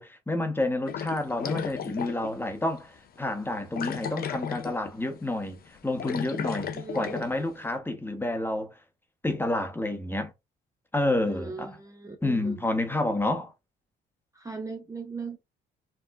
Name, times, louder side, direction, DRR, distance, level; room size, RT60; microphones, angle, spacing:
voice 1, 0.0-8.7 9.2-10.3 10.9-11.7 12.2-13.5, left 1 dB, 10° left, 0.8 m, -29 dB
sound 1, 0.9-2.4 2.8-2.9 3.8-4.9 5.2-5.4 5.8-7.3, left 8 dB, 50° left, 0.5 m, -34 dB
voice 2, 6.7-7.2 11.2-12.6 14.3-15.4, right 4 dB, 15° right, 0.5 m, -39 dB
4.5 x 2.4 x 2.3 m
cardioid pair, 90°, 20 cm